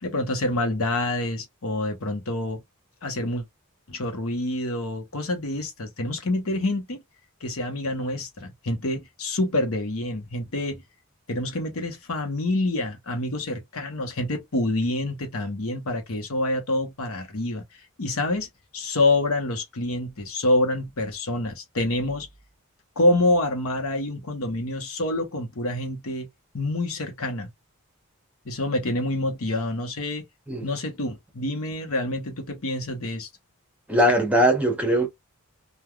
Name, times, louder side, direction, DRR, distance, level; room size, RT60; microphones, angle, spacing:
voice 1, 0.0-2.6 3.0-3.4 3.9-7.0 7.4-10.8 11.3-17.6 18.0-22.3 23.0-26.3 26.5-27.5 28.4-30.3 30.6-33.3, left 2 dB, 70° left, 0.9 m, -27 dB
voice 2, 33.9-35.1, equal, 5° right, 0.8 m, -20 dB
3.3 x 2.3 x 2.2 m
head